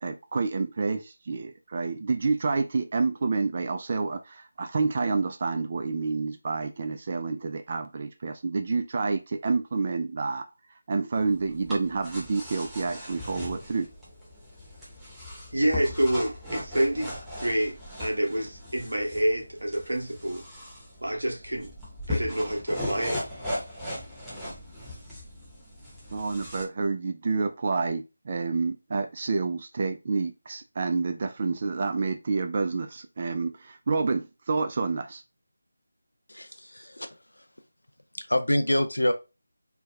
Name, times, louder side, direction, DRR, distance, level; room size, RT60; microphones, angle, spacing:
voice 1, 0.0-10.4 10.9-13.9 26.1-35.2, right 4 dB, 35° right, 0.3 m, -28 dB
sound 1, 11.1-26.6, left 1 dB, 5° right, 1.0 m, -38 dB
voice 2, 15.5-20.4 21.0-21.7 22.1-23.2, right 1 dB, 70° right, 1.3 m, -28 dB
voice 3, 36.3-37.1 38.2-39.1, left 1 dB, 85° left, 0.6 m, -26 dB
3.3 x 2.2 x 3.1 m
figure-of-eight pair, 165°, 0 cm